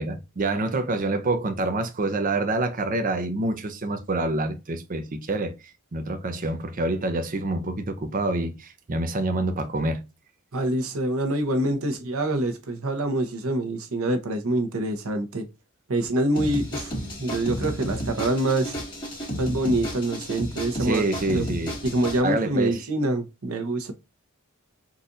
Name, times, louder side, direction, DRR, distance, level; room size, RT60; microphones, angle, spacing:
voice 1, 0.0-5.5 5.9-10.0 20.8-21.8 22.2-22.8, right 2 dB, 40° right, 0.5 m, -27 dB
voice 2, 10.5-15.5 15.9-16.9 17.2-18.8 19.4-21.5 21.8-23.9, right 1 dB, 90° right, 0.8 m, -25 dB
sound 1, 16.4-22.2, equal, 20° left, 2.1 m, -32 dB
4.1 x 2.4 x 2.5 m
head